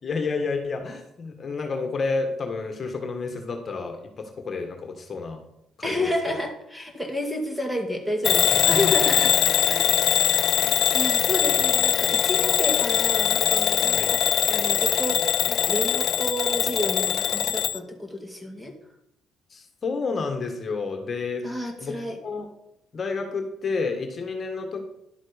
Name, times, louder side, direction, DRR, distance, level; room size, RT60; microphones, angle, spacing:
voice 1, 0.0-5.4 5.8-6.1 8.7-9.1 10.6-10.8 14.0-14.1 19.5-21.5 21.8-22.0 22.2-22.5 22.9-24.8, left 4 dB, 40° left, 4 dB, 1.7 m, -30 dB
voice 2, 5.8-9.3 9.7-9.9 10.5-18.7 21.4-22.2, left 1 dB, 5° right, 3 dB, 2.3 m, -30 dB
Bell / Alarm, 8.2-17.8, left 10 dB, 70° left, 0.5 m, -22 dB
11.5 x 7.3 x 5.2 m, 0.79 s
cardioid pair, 95°, 0 cm